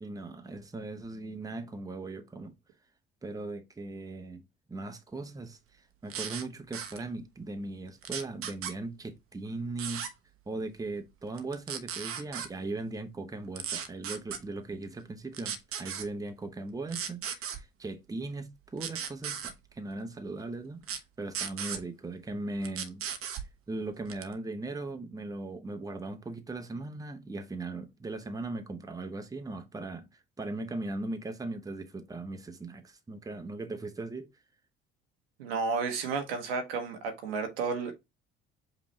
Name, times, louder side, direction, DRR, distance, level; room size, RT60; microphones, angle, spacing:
voice 1, 0.0-2.6 3.2-10.1 10.5-23.0 23.4-34.3, right 2 dB, 10° right, 0.9 m, -39 dB
sound 1, 6.1-6.4 6.7-7.0 8.0-8.7 9.8-10.1 11.4-12.5 13.6-14.4 15.3-16.1 16.9-17.6 18.8-19.5 20.8-21.0 21.3-21.8 22.6-23.5 24.1-24.3, right 8 dB, 50° right, 0.8 m, -36 dB
voice 2, 35.4-37.9, right 4 dB, 75° right, 1.0 m, -32 dB
5.2 x 3.0 x 3.1 m
figure-of-eight pair, 55°, 29 cm